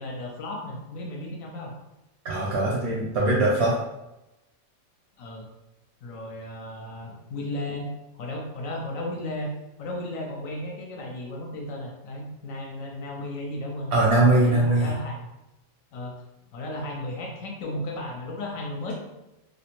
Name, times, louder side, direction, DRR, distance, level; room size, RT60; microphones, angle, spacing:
voice 1, 0.0-1.7 5.2-5.5 6.0-7.9 8.1-9.5 9.8-14.0 14.4-15.2 15.9-16.1 16.5-19.0, left 1 dB, 75° left, 0 dB, 0.9 m, -34 dB
voice 2, 2.2-3.7 13.9-14.9, right 2 dB, 65° right, -4 dB, 0.7 m, -21 dB
2.5 x 2.1 x 2.9 m, 0.95 s
omnidirectional pair, 1.5 m